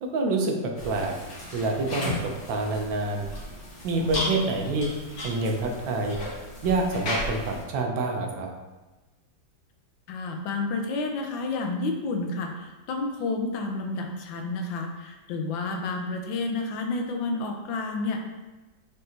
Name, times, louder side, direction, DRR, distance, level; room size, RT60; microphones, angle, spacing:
voice 1, 0.0-1.1 1.5-3.3 3.8-4.9 5.2-6.2 6.6-8.5, right 2 dB, 85° right, 2 dB, 1.5 m, -27 dB
sound 1, 0.8-7.6, left 1 dB, 55° left, 1.6 m, -35 dB
voice 2, 10.1-18.2, left 3 dB, 85° left, 3 dB, 1.4 m, -30 dB
5.2 x 3.6 x 2.8 m, 1.1 s
omnidirectional pair, 2.0 m